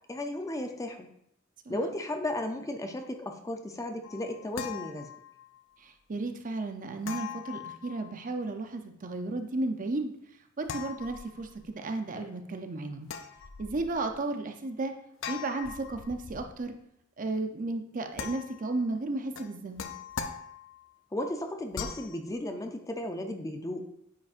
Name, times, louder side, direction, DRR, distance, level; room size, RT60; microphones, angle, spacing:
voice 1, 0.1-1.1 1.7-5.1 21.1-23.8, left 1 dB, 15° left, 5 dB, 0.5 m, -35 dB
sound 1, 4.0-5.6 7.0-8.4 10.6-11.7 13.0-14.1 15.2-16.6 18.1-18.8 19.3-20.9 21.7-22.2, left 6 dB, 75° left, 0.5 m, -41 dB
voice 2, 5.8-10.1 10.6-13.1 13.6-14.9 15.3-16.7 17.2-19.9, right 2 dB, 40° right, 6 dB, 0.6 m, -34 dB
9.2 x 5.2 x 2.5 m, 0.71 s
head